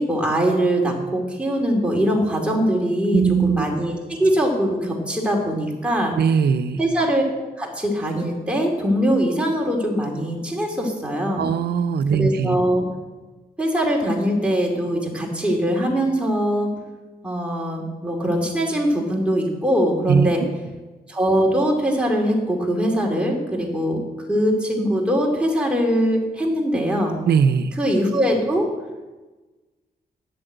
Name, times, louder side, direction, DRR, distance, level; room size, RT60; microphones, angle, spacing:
voice 1, 0.0-6.2 6.8-11.5 12.1-12.8 13.6-16.7 17.2-20.4 21.1-27.2 27.7-28.7, equal, 5° right, -1 dB, 2.6 m, -22 dB
voice 2, 3.1-3.6 6.2-6.8 11.4-12.6 20.1-20.5 27.3-27.7, right 6 dB, 80° right, 13 dB, 0.6 m, -20 dB
10.0 x 7.7 x 8.0 m, 1.2 s
wide cardioid pair, 135°, 16 cm